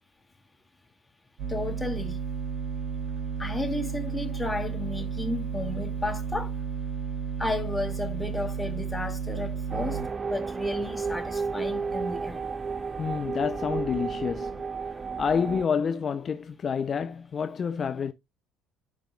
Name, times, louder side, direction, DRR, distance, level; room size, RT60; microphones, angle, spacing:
sound 1, 1.4-10.0, right 6 dB, 50° right, 2.7 m, -32 dB
voice 1, 1.5-2.2 3.4-6.5 7.4-10.0 10.3-12.5, left 2 dB, 10° left, 2.3 m, -33 dB
sound 2, 9.7-15.7, right 5 dB, 30° right, 0.4 m, -32 dB
voice 2, 13.0-18.1, left 6 dB, 40° left, 0.5 m, -29 dB
13.0 x 5.1 x 2.3 m
hypercardioid pair, 60°, 0 cm